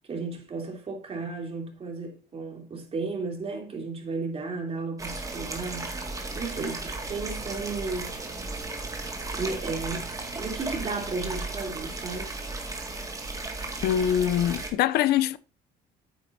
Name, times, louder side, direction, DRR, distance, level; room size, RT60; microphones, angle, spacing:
voice 1, 0.1-8.2 9.3-10.1 10.3-12.3, right 4 dB, 35° right, 3.2 m, -34 dB
sound 1, 5.0-14.7, right 2 dB, 20° right, 2.1 m, -35 dB
voice 2, 13.8-15.4, left 11 dB, 75° left, 0.6 m, -23 dB
9.3 x 8.7 x 2.7 m
cardioid pair, 110°, 17 cm